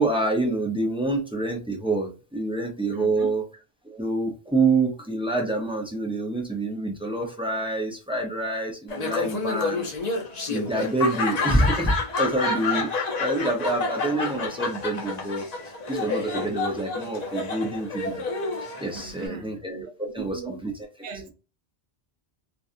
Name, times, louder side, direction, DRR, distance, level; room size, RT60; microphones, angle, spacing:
voice 1, 0.0-3.4 3.8-9.9 10.5-15.5 15.9-18.2 18.8-20.7 21.0-21.1, right 2 dB, 5° right, 0.4 m, -27 dB
voice 2, 2.9-3.3 18.9-20.6 21.0-21.3, right 7 dB, 70° right, 0.9 m, -39 dB
Laughter, 8.9-19.3, left 3 dB, 45° left, 0.7 m, -29 dB
2.6 x 2.3 x 2.4 m
omnidirectional pair, 1.0 m